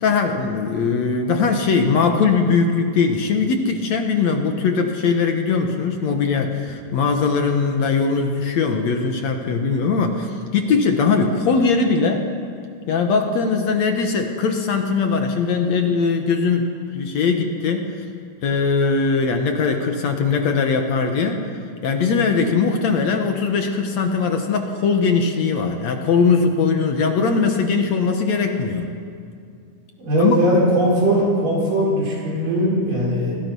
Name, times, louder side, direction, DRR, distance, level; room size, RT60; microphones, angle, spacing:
voice 1, 0.0-12.3 12.9-17.9 18.4-21.5 21.8-28.9 30.2-30.4, left 5 dB, 60° left, 4 dB, 2.2 m, -20 dB
voice 2, 30.0-33.3, equal, 70° right, -4 dB, 7.0 m, -19 dB
29.5 x 20.0 x 5.4 m, 2.4 s
omnidirectional pair, 3.9 m